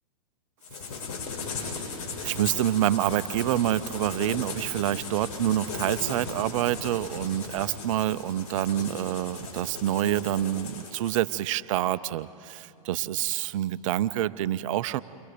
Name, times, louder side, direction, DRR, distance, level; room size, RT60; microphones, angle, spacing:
sound 1, 0.6-11.3, left 4 dB, 55° left, 6.1 m, -37 dB
voice 1, 2.2-15.0, right 13 dB, 55° right, 15 dB, 0.6 m, -27 dB
29.5 x 23.0 x 5.1 m, 2.6 s
hypercardioid pair, 115°, 20 cm